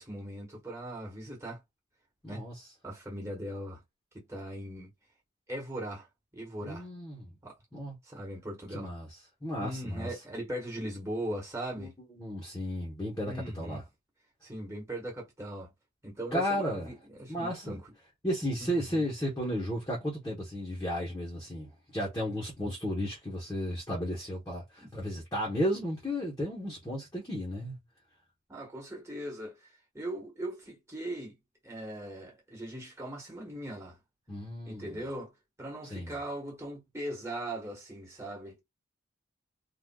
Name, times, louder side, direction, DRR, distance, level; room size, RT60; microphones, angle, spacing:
voice 1, 0.0-1.6 2.3-2.4 2.8-3.8 4.3-4.9 5.5-6.1 6.3-6.9 7.4-7.5 8.0-8.9 9.6-12.0 13.2-13.8 14.4-15.7 16.0-17.9 18.6-19.0 24.8-24.9 28.5-29.6 29.9-31.4 31.6-34.0 34.6-35.3 35.6-38.6, right 1 dB, 15° right, 1.3 m, -39 dB
voice 2, 2.2-2.5 6.6-7.3 7.7-8.0 8.7-9.1 9.4-10.2 11.8-11.9 12.2-13.8 16.3-16.9 17.3-17.8 18.2-27.8 34.3-34.9 35.9-36.2, equal, 15° left, 0.9 m, -34 dB
3.6 x 2.4 x 2.2 m
head